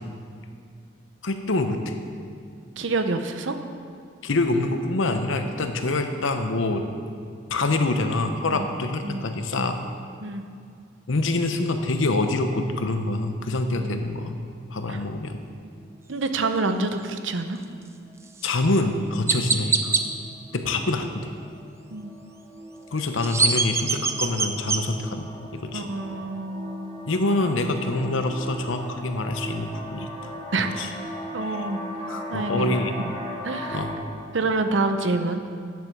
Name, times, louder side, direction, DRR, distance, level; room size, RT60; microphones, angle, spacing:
voice 1, 1.2-1.9 4.2-6.9 7.5-9.8 11.1-14.4 14.7-15.4 18.4-20.0 20.5-21.3 22.9-25.8 27.1-30.3 30.6-30.9 31.4-31.6 32.1-32.9 33.7-34.0, left 2 dB, 75° left, 6 dB, 0.8 m, -26 dB
voice 2, 2.8-3.6 8.5-8.7 9.0-9.3 10.2-10.4 13.6-13.9 14.9-15.0 16.1-17.6 20.7-20.8 21.9-22.2 25.7-27.0 30.5-30.7 31.3-31.8 32.3-32.8 33.0-33.1 33.4-33.8 34.3-35.4, right 3 dB, 70° right, 8 dB, 0.7 m, -27 dB
sound 1, 15.6-16.1 16.6-16.8 17.1-17.4 17.7-34.0, equal, 10° left, 1.2 m, -39 dB
Chirp tweet, 18.4-18.5 19.3-20.0 23.0-24.8, right 4 dB, 15° right, 0.4 m, -23 dB
9.3 x 7.8 x 6.5 m, 2.3 s
head